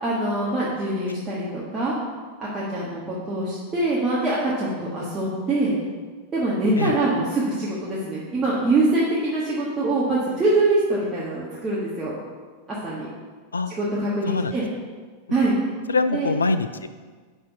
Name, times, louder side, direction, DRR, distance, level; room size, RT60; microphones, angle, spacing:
voice 1, 0.0-1.9 2.4-5.7 6.3-12.2 12.8-13.1 13.7-14.6 15.3-15.5 16.1-16.3, right 2 dB, 20° right, -7 dB, 1.4 m, -24 dB
voice 2, 15.9-16.9, left 3 dB, 80° left, 10 dB, 0.3 m, -23 dB
5.7 x 4.4 x 5.8 m, 1.5 s
figure-of-eight pair, 90°, 0 cm